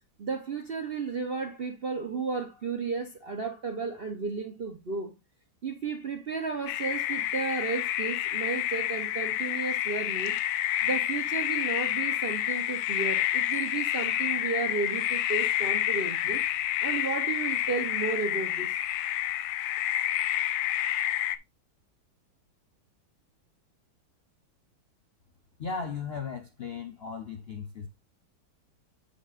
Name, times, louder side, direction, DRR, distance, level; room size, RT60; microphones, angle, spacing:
voice 1, 0.2-5.1 5.6-10.4 10.8-16.4 16.8-18.7, right 4 dB, 45° right, 0.7 m, -33 dB
sound 1, 6.7-21.4, left 12 dB, 90° left, 1.4 m, -29 dB
voice 2, 25.6-27.9, left 5 dB, 60° left, 0.6 m, -36 dB
8.2 x 7.0 x 2.5 m
omnidirectional pair, 2.2 m